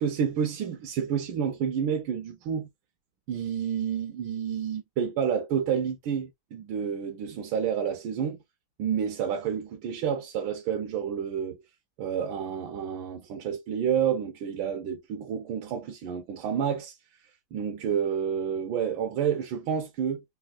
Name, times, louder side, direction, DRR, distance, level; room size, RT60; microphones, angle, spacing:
voice 1, 0.0-2.7 3.3-8.4 8.8-11.6 12.0-16.9 17.5-20.2, right 8 dB, 80° right, 1.3 m, -29 dB
3.9 x 2.2 x 2.2 m
omnidirectional pair, 2.2 m